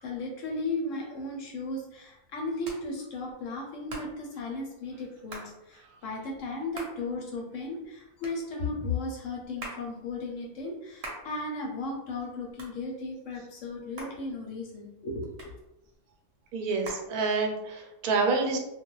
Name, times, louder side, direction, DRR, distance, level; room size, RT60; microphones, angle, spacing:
voice 1, 0.0-15.5, left 2 dB, 70° left, 0 dB, 0.8 m, -35 dB
Hands, 1.1-17.8, right 1 dB, 55° right, 0.8 m, -48 dB
voice 2, 16.5-18.6, right 4 dB, 80° right, 2 dB, 1.0 m, -27 dB
2.3 x 2.2 x 3.0 m, 0.88 s
omnidirectional pair, 1.6 m